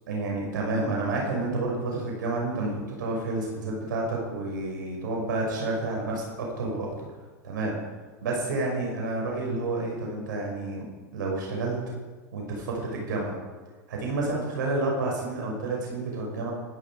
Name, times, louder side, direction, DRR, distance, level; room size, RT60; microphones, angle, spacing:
voice 1, 0.1-7.1 7.4-7.8 8.2-10.9 11.1-11.8 12.3-13.4 13.9-16.5, right 2 dB, 80° right, -1 dB, 5.8 m, -29 dB
24.5 x 11.5 x 5.0 m, 1.4 s
hypercardioid pair, 105°, 10 cm